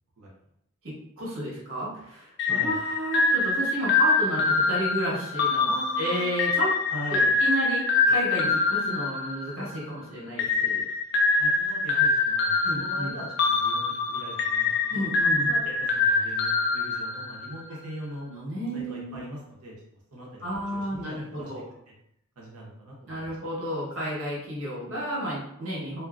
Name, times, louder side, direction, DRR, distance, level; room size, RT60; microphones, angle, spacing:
voice 1, 0.8-6.7 7.1-10.8 12.6-13.1 14.9-15.5 18.3-19.2 20.4-21.6 23.1-26.0, right 1 dB, 60° right, -6 dB, 1.2 m, -32 dB
sound 1, 2.4-9.8 10.4-17.6, left 3 dB, 50° left, 0.3 m, -25 dB
voice 2, 2.4-2.8 5.6-6.2 6.9-7.4 11.4-15.0 15.4-18.3 18.7-20.5 20.7-21.5 22.4-23.2, right 1 dB, 90° right, -3 dB, 0.8 m, -41 dB
2.6 x 2.4 x 2.4 m, 0.76 s
head